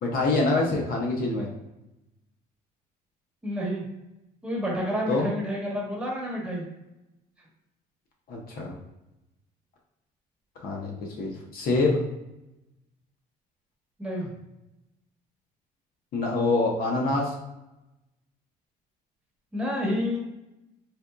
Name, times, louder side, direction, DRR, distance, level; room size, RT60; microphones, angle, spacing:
voice 1, 0.0-1.5 5.1-5.3 8.3-8.7 10.6-12.0 16.1-17.3, left 3 dB, 65° left, -1 dB, 0.8 m, -25 dB
voice 2, 3.4-3.8 4.4-6.6 14.0-14.3 19.5-20.2, equal, 5° right, -3 dB, 1.1 m, -29 dB
4.2 x 2.5 x 2.3 m, 0.94 s
cardioid pair, 110°, 17 cm